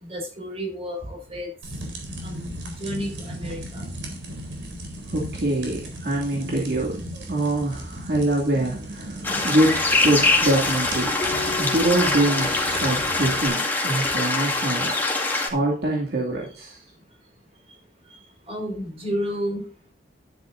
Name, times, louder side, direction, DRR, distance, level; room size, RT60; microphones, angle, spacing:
voice 1, 0.0-1.5 2.2-3.9 18.5-19.6, equal, 35° right, 1 dB, 5.1 m, -31 dB
sound 1, 1.6-13.5, right 1 dB, 90° right, 4.1 m, -37 dB
voice 2, 5.1-11.1 11.6-14.9 15.5-16.8, right 1 dB, 60° right, -2 dB, 2.5 m, -24 dB
sound 2, 9.2-15.5, left 2 dB, 10° left, 2.1 m, -23 dB
Keyboard (musical), 11.2-14.0, left 5 dB, 55° left, 2.0 m, -37 dB
11.5 x 10.0 x 2.6 m, 0.41 s
head